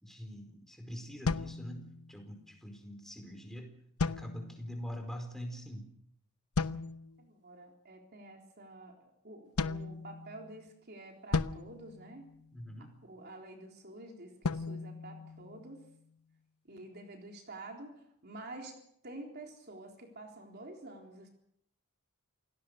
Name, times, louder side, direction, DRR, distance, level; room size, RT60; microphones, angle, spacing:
voice 1, 0.0-3.7 4.1-5.9 12.5-12.9, equal, ahead, 4 dB, 4.7 m, -44 dB
sound 1, 1.3-2.3 4.0-4.8 6.6-7.2 9.6-10.6 11.3-12.8 14.4-16.0, left 4 dB, 80° left, 0.9 m, -36 dB
voice 2, 7.2-12.3 12.8-15.9 16.7-18.8 19.0-21.3, right 2 dB, 45° right, 2 dB, 3.8 m, -49 dB
28.0 x 18.5 x 6.7 m, 0.70 s
head